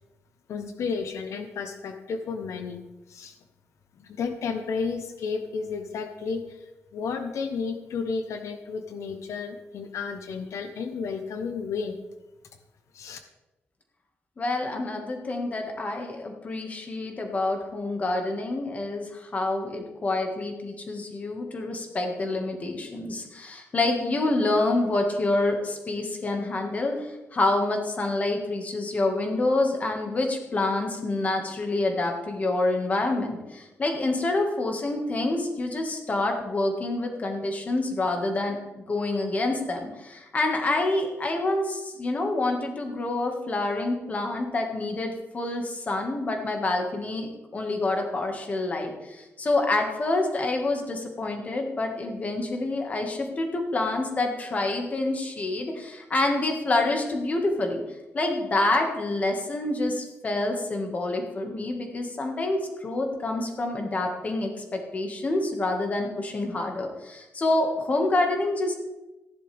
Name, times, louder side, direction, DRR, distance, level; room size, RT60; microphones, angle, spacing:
voice 1, 0.5-2.8 3.1-3.4 4.0-12.0 12.9-13.2, left 5 dB, 85° left, 7 dB, 1.0 m, -32 dB
voice 2, 14.4-57.8 58.1-68.8, left 2 dB, 30° left, 3 dB, 1.8 m, -27 dB
15.0 x 10.5 x 3.5 m, 1.0 s
wide cardioid pair, 165°, 5 cm